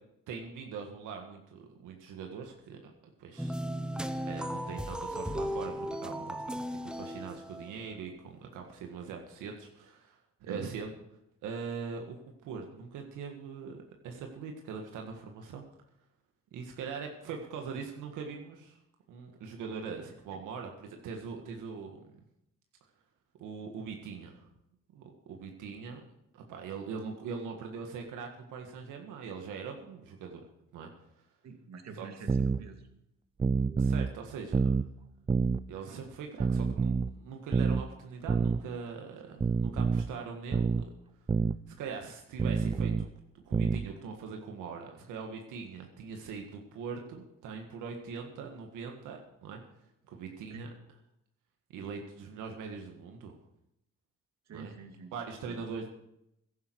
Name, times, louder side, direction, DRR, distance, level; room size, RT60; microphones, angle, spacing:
voice 1, 0.3-2.9 3.2-3.6 4.2-10.9 11.4-15.6 16.5-18.8 19.1-22.1 23.4-24.5 24.9-26.0 26.3-30.4 30.7-30.9 32.0-32.1 33.8-34.7 35.7-40.9 41.8-43.1 43.3-49.6 50.1-50.7 51.7-53.4 54.5-54.7 55.1-55.9, right 5 dB, 90° right, 2 dB, 1.8 m, -42 dB
sound 1, 3.4-8.0, equal, 5° right, 0.9 m, -36 dB
voice 2, 31.4-32.9 39.2-39.4 50.5-50.7 54.5-55.1 55.4-55.7, right 4 dB, 60° right, 5 dB, 2.3 m, -47 dB
sound 2, 32.3-32.6 33.4-34.1 34.5-34.9 35.3-35.6 36.4-37.1 37.5-37.8 38.3-38.6 39.4-40.1 40.5-40.9 41.3-41.6 42.4-43.1 43.5-43.9, right 4 dB, 20° right, 0.4 m, -27 dB
15.5 x 11.5 x 4.7 m, 0.82 s
cardioid pair, 90°, 30 cm